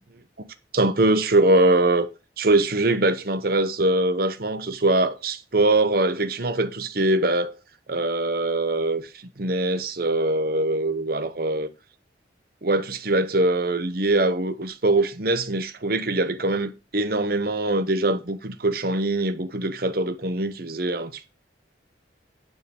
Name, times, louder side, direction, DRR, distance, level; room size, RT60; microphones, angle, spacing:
voice 1, 0.7-2.1 2.4-7.6 7.9-11.7 12.6-21.3, right 2 dB, 50° right, 0.9 m, -23 dB
9.6 x 3.8 x 6.8 m
head